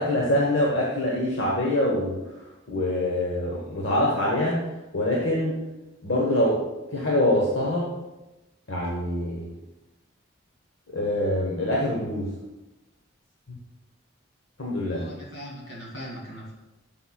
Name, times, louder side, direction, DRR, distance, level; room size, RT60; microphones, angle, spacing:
voice 1, 0.0-2.2 2.7-4.7 4.9-5.6 6.0-6.6 6.9-7.9 8.7-9.4 10.9-12.3 14.6-15.1, left 1 dB, 65° left, -3 dB, 1.1 m, -24 dB
voice 2, 14.9-16.5, equal, 85° left, -3 dB, 2.4 m, -39 dB
11.5 x 5.6 x 2.3 m, 1.0 s
head